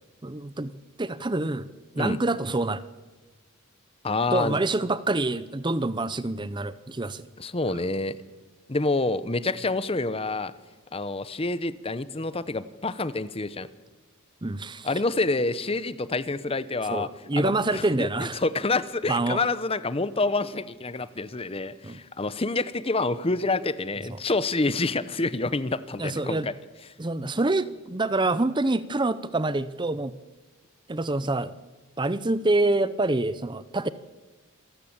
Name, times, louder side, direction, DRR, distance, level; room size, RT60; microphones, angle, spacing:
voice 1, 0.2-0.7 1.0-1.7 2.0-2.8 4.3-7.3 14.4-14.9 16.9-18.4 19.1-19.4 21.8-22.0 26.0-26.5 27.0-30.1 30.9-31.5 32.0-33.9, right 2 dB, 20° right, 15 dB, 0.7 m, -26 dB
voice 2, 4.0-4.6 7.4-8.2 8.7-10.5 10.9-13.7 14.8-18.1 18.3-26.5, left 3 dB, 25° left, 15 dB, 0.8 m, -27 dB
27.0 x 13.5 x 8.8 m, 1.2 s
head